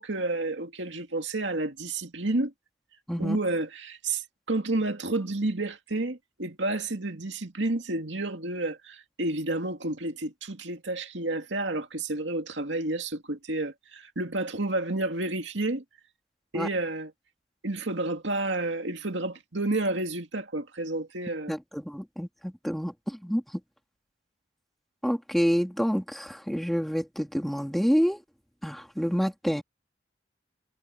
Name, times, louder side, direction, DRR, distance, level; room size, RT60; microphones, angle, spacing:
voice 1, 0.0-2.5 3.2-15.8 16.5-17.1 17.6-21.5, right 2 dB, 90° right, 2.3 m, -30 dB
voice 2, 21.5-23.4 25.0-28.2 28.6-29.6, equal, ahead, 3.6 m, -28 dB
head